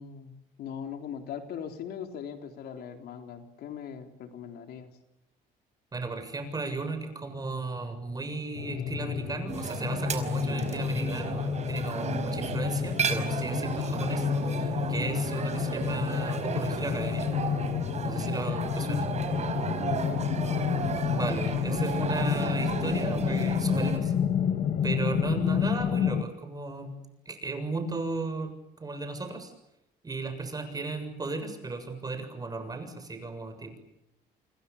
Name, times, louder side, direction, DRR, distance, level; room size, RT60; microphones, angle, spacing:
voice 1, 0.0-4.9 19.8-20.2, left 8 dB, 70° left, 5 dB, 3.6 m, -40 dB
voice 2, 5.9-17.3 18.0-19.1 21.1-24.1 24.8-26.9 27.3-28.5 28.8-29.5 30.0-33.8, right 3 dB, 20° right, 8 dB, 7.2 m, -35 dB
sound 1, 8.6-26.2, left 8 dB, 50° left, 2.1 m, -30 dB
sound 2, 9.5-24.0, right 6 dB, 40° right, 5.0 m, -34 dB
29.0 x 27.5 x 7.1 m, 0.85 s
cardioid pair, 110°, 17 cm